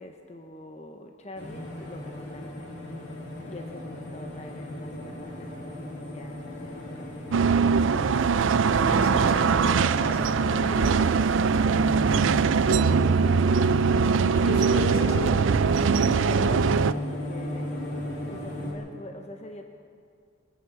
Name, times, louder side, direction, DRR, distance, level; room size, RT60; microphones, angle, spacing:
voice 1, 0.0-2.8 3.5-7.2 11.6-12.3 16.0-17.7 18.3-19.6, left 1 dB, 35° left, 4 dB, 0.8 m, -44 dB
sound 1, 1.4-18.7, left 1 dB, 55° left, 2.8 m, -35 dB
sound 2, 7.3-16.9, right 5 dB, 70° right, 0.4 m, -22 dB
voice 2, 8.4-11.0 14.3-15.5, left 1 dB, 90° left, 0 dB, 3.6 m, -34 dB
23.0 x 9.8 x 6.4 m, 2.3 s
head